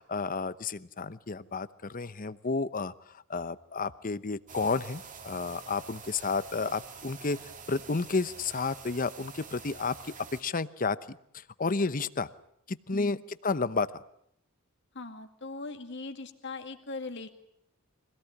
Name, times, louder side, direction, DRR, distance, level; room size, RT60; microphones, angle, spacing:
voice 1, 0.0-2.9 3.3-7.4 7.7-12.3 12.7-13.2 13.4-14.0, left 4 dB, 40° left, 15 dB, 0.9 m, -31 dB
sound 1, 4.5-10.4, right 5 dB, 40° right, 2.1 m, -47 dB
voice 2, 14.9-17.3, left 3 dB, 55° left, 6 dB, 2.2 m, -40 dB
24.5 x 17.5 x 10.0 m, 0.73 s
head